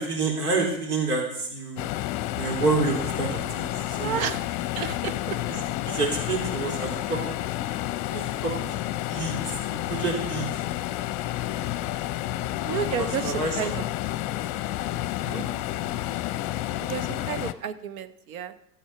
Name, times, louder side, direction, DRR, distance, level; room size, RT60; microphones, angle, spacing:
voice 1, 0.0-1.9 2.3-4.3 5.5-7.2 8.1-8.7 9.1-10.6 12.7-13.7 15.2-15.4, right 3 dB, 80° right, 1 dB, 3.3 m, -29 dB
sound 1, 1.8-17.5, left 14 dB, 40° left, 0.7 m, -30 dB
voice 2, 4.0-5.4 12.6-13.9 16.8-18.5, right 8 dB, 65° right, 12 dB, 0.9 m, -32 dB
13.0 x 7.2 x 5.7 m, 0.75 s
hypercardioid pair, 90°, 46 cm